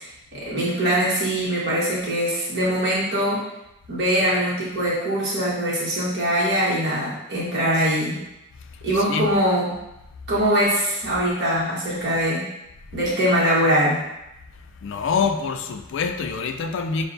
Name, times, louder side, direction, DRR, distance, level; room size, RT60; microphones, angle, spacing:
voice 1, 0.0-3.4 3.9-8.2 8.8-9.7 10.3-12.5 12.9-14.0, equal, 50° right, -7 dB, 1.4 m, -22 dB
voice 2, 14.8-17.1, left 5 dB, 55° left, 6 dB, 0.3 m, -26 dB
6.5 x 2.2 x 2.6 m, 0.90 s
head